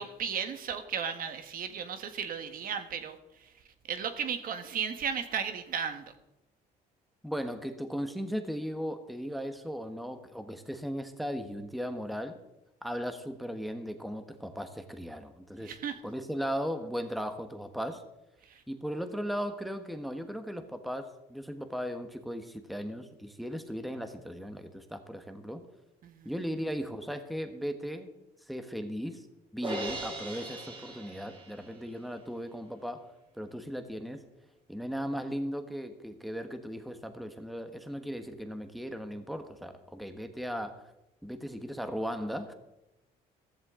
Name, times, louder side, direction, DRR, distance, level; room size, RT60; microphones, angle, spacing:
voice 1, 0.0-3.5 3.9-6.0 15.6-16.0 18.4-18.6 26.0-26.3, right 7 dB, 60° right, 8 dB, 1.5 m, -35 dB
voice 2, 7.2-12.4 12.8-15.8 16.0-18.0 18.7-25.6 26.2-28.1 28.5-29.2 29.5-33.1 33.4-34.2 34.7-40.8 41.2-42.5, equal, ahead, 7 dB, 1.3 m, -37 dB
Crash cymbal, 29.6-31.9, right 2 dB, 30° right, 5.2 m, -39 dB
15.0 x 14.5 x 3.8 m, 0.94 s
cardioid pair, 110°, 17 cm